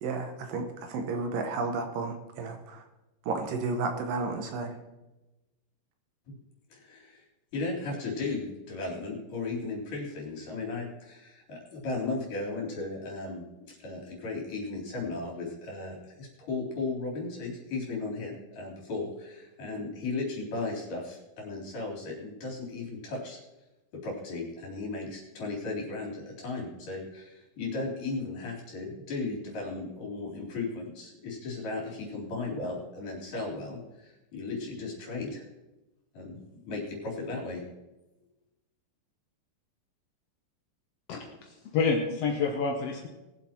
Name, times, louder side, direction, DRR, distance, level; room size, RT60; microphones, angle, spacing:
voice 1, 0.0-2.8 3.2-4.8, right 3 dB, 70° right, 5 dB, 2.6 m, -32 dB
voice 2, 6.7-7.2 7.5-13.4 13.8-23.4 24.0-35.4 36.1-37.6, left 3 dB, 60° left, -2 dB, 5.0 m, -36 dB
voice 3, 41.1-43.1, left 4 dB, 75° left, 2 dB, 1.4 m, -29 dB
20.5 x 7.5 x 4.5 m, 1.0 s
omnidirectional pair, 4.3 m